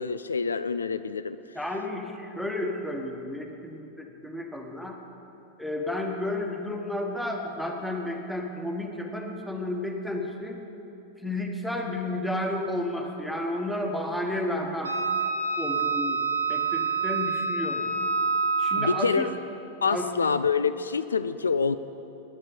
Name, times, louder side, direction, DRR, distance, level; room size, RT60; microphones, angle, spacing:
voice 1, 0.0-1.4 18.8-19.3 19.8-21.8, left 5 dB, 75° left, 12 dB, 0.3 m, -26 dB
voice 2, 1.5-5.0 5.6-10.6 11.2-14.9 15.6-17.9 18.6-19.3 19.9-20.1, left 1 dB, ahead, 2 dB, 1.4 m, -32 dB
Wind instrument woodwind instrument, 14.8-19.0, right 4 dB, 85° right, 1.6 m, -27 dB
9.9 x 8.8 x 9.1 m, 3.0 s
figure-of-eight pair, 90°, 0 cm